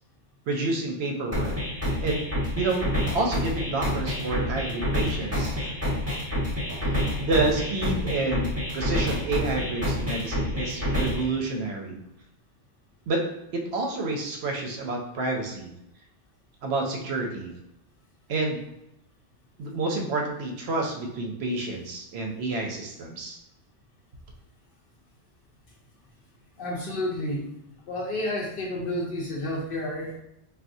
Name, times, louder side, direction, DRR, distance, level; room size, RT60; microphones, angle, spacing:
voice 1, 0.5-1.6 2.0-2.3 2.5-2.8 3.1-5.6 7.2-12.0 13.1-13.2 13.5-15.7 16.6-17.5 18.3-18.6 19.6-23.4, right 3 dB, 70° right, 1 dB, 0.8 m, -29 dB
sound 1, 1.3-11.3, left 1 dB, 15° right, 0.8 m, -28 dB
voice 2, 26.6-27.5 27.9-30.2, left 1 dB, 60° left, -1 dB, 0.6 m, -31 dB
3.4 x 2.3 x 2.6 m, 0.85 s
omnidirectional pair, 1.2 m